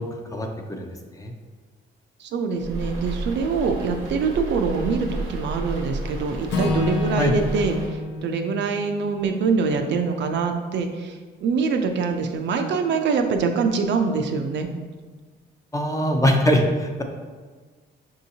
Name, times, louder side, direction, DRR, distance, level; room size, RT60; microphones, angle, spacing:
voice 1, 0.3-0.9 1.1-1.3 7.2-7.4 15.7-17.0, equal, 15° left, 3 dB, 0.5 m, -22 dB
voice 2, 2.2-14.7, right 5 dB, 65° right, 5 dB, 0.5 m, -24 dB
sound 1, 2.6-7.9, right 2 dB, 90° right, 0.9 m, -32 dB
Acoustic guitar / Strum, 6.5-10.8, left 2 dB, 60° left, 0.7 m, -29 dB
5.5 x 2.8 x 2.7 m, 1.5 s
cardioid pair, 90°, 20 cm